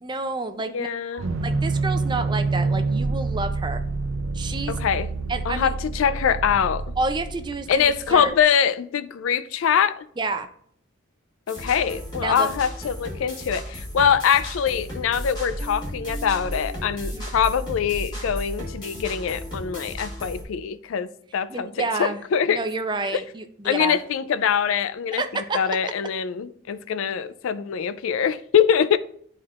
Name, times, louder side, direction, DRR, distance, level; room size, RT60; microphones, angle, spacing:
voice 1, 0.0-0.9 1.1-3.8 4.3-4.7 5.3-5.7 7.0-8.3 10.2-10.5 12.2-12.5 17.1-17.3 21.5-22.2 22.5-24.0 25.1-25.9, right 3 dB, 20° right, 0.4 m, -29 dB
voice 2, 0.7-1.2 4.7-5.1 5.5-6.9 7.7-10.1 11.5-22.6 23.1-23.2 23.6-25.2 25.5-29.0, left 7 dB, 75° left, 0.3 m, -23 dB
sound 1, 1.2-8.4, right 3 dB, 75° right, 0.6 m, -27 dB
sound 2, 11.5-20.4, equal, 20° left, 1.9 m, -34 dB
11.0 x 4.3 x 2.4 m
head